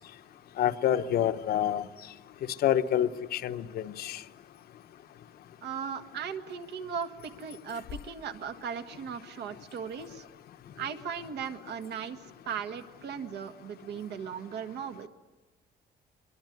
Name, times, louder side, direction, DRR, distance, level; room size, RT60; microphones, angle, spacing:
voice 1, 0.6-1.8 2.6-4.2, left 10 dB, 60° left, 9 dB, 1.0 m, -27 dB
voice 2, 5.6-10.2 10.8-15.1, right 7 dB, 75° right, 7 dB, 1.8 m, -37 dB
24.5 x 23.0 x 9.3 m, 1.2 s
cardioid pair, 170°, 18 cm